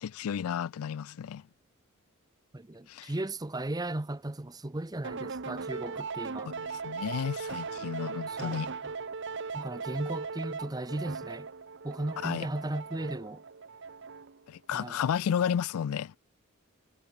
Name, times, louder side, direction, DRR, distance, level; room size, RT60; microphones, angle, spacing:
voice 1, 0.0-1.5 2.9-3.1 6.5-8.7 12.2-12.5 14.5-16.2, left 8 dB, 85° left, 0.4 m, -32 dB
voice 2, 2.5-6.5 8.3-8.7 9.5-11.5 11.8-13.4 14.7-15.0, right 1 dB, 20° right, 0.8 m, -36 dB
sound 1, 5.0-14.4, right 4 dB, 55° right, 1.0 m, -38 dB
head